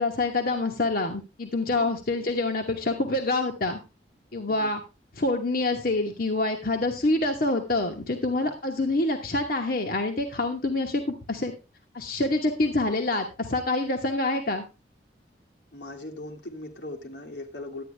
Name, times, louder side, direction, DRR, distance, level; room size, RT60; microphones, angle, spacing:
voice 1, 0.0-3.8 4.3-4.8 5.2-11.5 11.9-14.6, left 2 dB, 55° left, 3 dB, 1.1 m, -26 dB
voice 2, 15.7-17.8, left 2 dB, 85° left, 1 dB, 2.0 m, -39 dB
11.5 x 9.0 x 3.3 m, 0.28 s
head